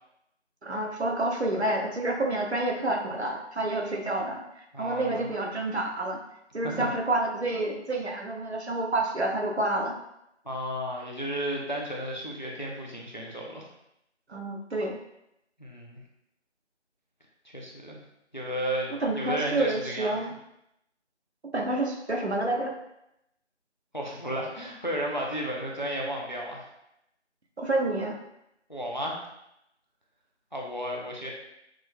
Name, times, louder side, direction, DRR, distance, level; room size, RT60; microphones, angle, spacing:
voice 1, 0.6-6.2 6.5-10.0 14.3-15.0 19.0-20.3 21.5-22.7 27.6-28.2, right 2 dB, 65° right, 1 dB, 0.9 m, -28 dB
voice 2, 4.7-5.3 6.6-6.9 10.4-13.7 15.6-16.0 17.5-18.0 18.3-20.1 23.9-26.7 28.7-29.2 30.5-31.3, equal, 40° left, -1 dB, 0.7 m, -33 dB
6.1 x 3.1 x 2.2 m, 0.81 s
figure-of-eight pair, 180°, 35 cm